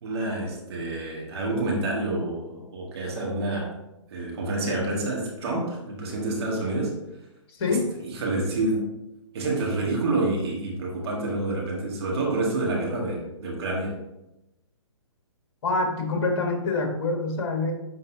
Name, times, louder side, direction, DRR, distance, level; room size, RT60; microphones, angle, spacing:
voice 1, 0.0-3.7 4.1-7.0 7.7-8.9 9.3-14.0, right 2 dB, 50° right, -2 dB, 1.8 m, -28 dB
voice 2, 7.6-7.9 15.6-17.7, left 3 dB, 50° left, 3 dB, 1.6 m, -25 dB
9.8 x 3.9 x 2.8 m, 0.93 s
hypercardioid pair, 135°, 17 cm